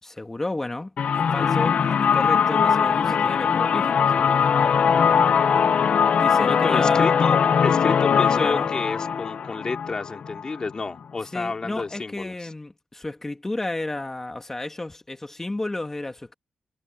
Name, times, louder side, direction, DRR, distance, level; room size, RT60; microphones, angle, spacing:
voice 1, 0.0-0.9 1.3-4.1 6.2-7.1 8.4-8.7 11.3-16.3, left 2 dB, 15° left, 1.9 m, -32 dB
sound 1, 1.0-10.7, left 7 dB, 60° left, 0.7 m, -21 dB
voice 2, 6.4-12.5, left 4 dB, 30° left, 3.8 m, -30 dB
wide cardioid pair, 140°, 3 cm